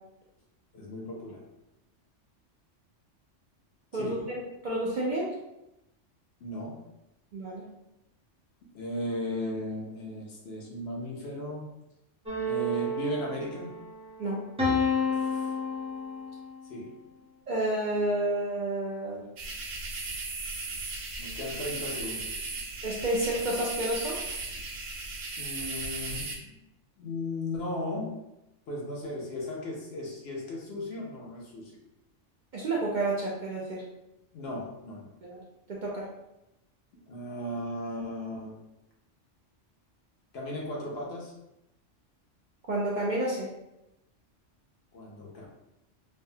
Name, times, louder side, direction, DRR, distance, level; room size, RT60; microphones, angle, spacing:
voice 1, 0.7-1.4 3.9-4.2 6.4-6.8 8.7-11.7 12.5-13.7 15.1-15.6 16.7-16.9 21.2-22.4 25.4-26.6 27.0-28.1 28.7-31.7 34.3-35.1 37.0-38.6 40.3-41.3 44.9-45.5, left 1 dB, 60° left, -2 dB, 0.8 m, -36 dB
voice 2, 3.9-5.3 7.3-7.6 14.2-14.4 17.5-19.2 22.8-24.2 32.5-33.8 35.2-35.4 35.7-36.1 42.7-43.5, right 1 dB, 55° right, -5 dB, 0.5 m, -30 dB
sound 1, 12.3-13.9 14.6-16.5, left 2 dB, 5° right, 0.5 m, -30 dB
sound 2, 19.4-26.4, right 3 dB, 85° right, 1.0 m, -36 dB
3.3 x 2.0 x 2.7 m, 0.89 s
omnidirectional pair, 1.3 m